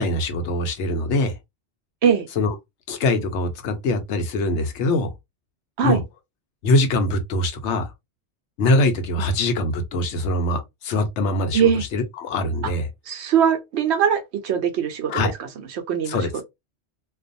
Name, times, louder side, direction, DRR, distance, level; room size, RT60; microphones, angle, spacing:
voice 1, 0.0-1.3 2.4-2.5 2.9-5.1 5.8-6.0 6.6-7.9 8.6-12.9 15.1-15.3 16.1-16.3, left 2 dB, 90° left, 1.0 m, -23 dB
voice 2, 11.5-11.8 13.1-15.3 15.7-16.2, right 8 dB, 75° right, 0.9 m, -21 dB
2.4 x 2.2 x 2.5 m
omnidirectional pair, 1.2 m